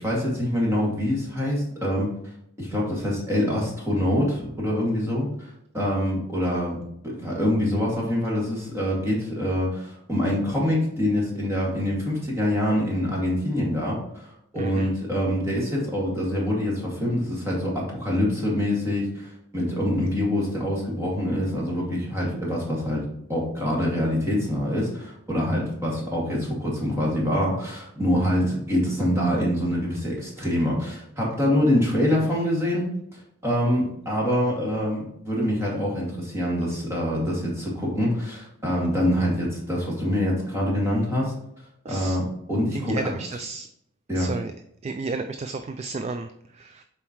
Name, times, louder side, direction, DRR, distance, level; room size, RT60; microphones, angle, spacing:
voice 1, 0.0-2.3 2.6-6.8 7.0-41.3 41.9-42.2 42.5-43.0 44.1-44.3, left 1 dB, 15° right, -4 dB, 2.2 m, -25 dB
voice 2, 14.6-14.9 41.8-42.2 42.7-43.7 44.1-44.5 44.8-46.8, right 3 dB, 35° right, 8 dB, 0.3 m, -32 dB
7.2 x 4.5 x 3.1 m, 0.75 s
head